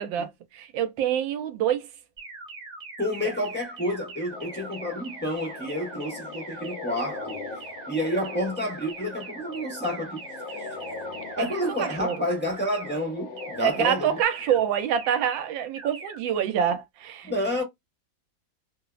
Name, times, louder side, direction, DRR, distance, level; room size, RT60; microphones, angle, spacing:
voice 1, 0.0-1.8 3.2-3.3 11.8-12.2 13.6-17.3, right 9 dB, 85° right, 1.4 m, -26 dB
sound 1, 2.2-12.2 12.6-13.0 13.4-13.8 14.2-14.6 15.0-15.4 15.8-16.2, right 3 dB, 40° right, 0.6 m, -42 dB
voice 2, 3.0-7.4 7.9-10.2 10.5-10.7 11.4-14.2 17.2-17.6, equal, 10° left, 0.6 m, -29 dB
sound 2, 4.3-14.3, left 4 dB, 80° left, 1.5 m, -40 dB
3.5 x 2.0 x 2.3 m
omnidirectional pair, 2.1 m